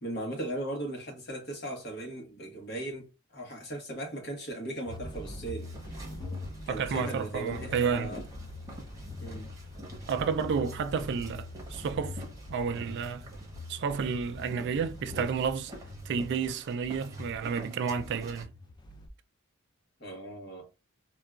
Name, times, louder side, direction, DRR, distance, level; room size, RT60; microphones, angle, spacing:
voice 1, 0.0-5.7 6.7-8.2 9.2-9.5 20.0-20.7, right 1 dB, 50° left, 1.2 m, -38 dB
sound 1, 4.9-19.1, left 2 dB, 20° left, 0.5 m, -43 dB
sound 2, 5.6-18.4, right 1 dB, 15° right, 0.9 m, -49 dB
voice 2, 6.7-8.1 10.1-13.3 13.7-15.7 16.1-18.5, right 6 dB, 55° right, 0.3 m, -31 dB
3.8 x 2.3 x 2.3 m
head